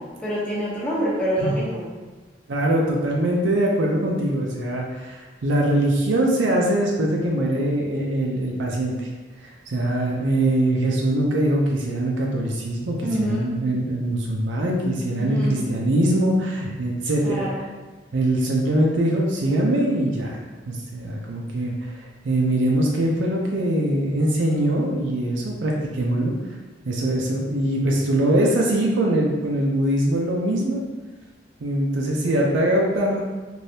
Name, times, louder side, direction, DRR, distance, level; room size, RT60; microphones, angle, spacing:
voice 1, 0.2-1.9 13.0-13.6 15.2-15.8 17.2-17.7, right 1 dB, 5° left, -8 dB, 0.8 m, -26 dB
voice 2, 2.5-9.1 9.4-17.5 18.1-20.4 20.7-26.3 26.8-30.8 31.6-33.2, right 1 dB, 90° right, -2 dB, 0.5 m, -22 dB
3.3 x 2.6 x 2.7 m, 1.3 s
head